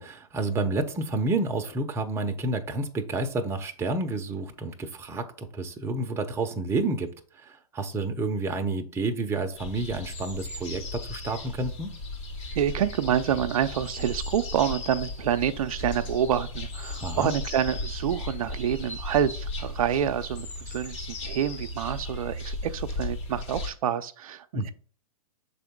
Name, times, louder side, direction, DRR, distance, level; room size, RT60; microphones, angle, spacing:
voice 1, 0.0-12.0 17.0-17.3 24.5-24.7, right 2 dB, 15° right, 6 dB, 0.7 m, -30 dB
sound 1, 9.6-23.7, left 2 dB, 55° left, 2.7 m, -36 dB
voice 2, 12.5-24.7, right 9 dB, 70° right, 9 dB, 0.5 m, -27 dB
6.8 x 3.9 x 3.7 m, 0.43 s
hypercardioid pair, 125°, 19 cm